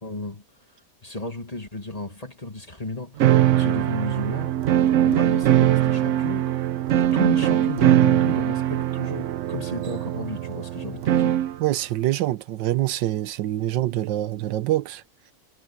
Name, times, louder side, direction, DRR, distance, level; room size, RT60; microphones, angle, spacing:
voice 1, 0.0-0.4 1.0-4.6 5.0-6.7 6.9-11.5, left 2 dB, 20° left, 2.0 m, -34 dB
sound 1, 3.2-11.6, right 12 dB, 70° right, 0.7 m, -21 dB
voice 2, 11.6-15.0, right 14 dB, 85° right, 1.4 m, -25 dB
omnidirectional pair, 1.9 m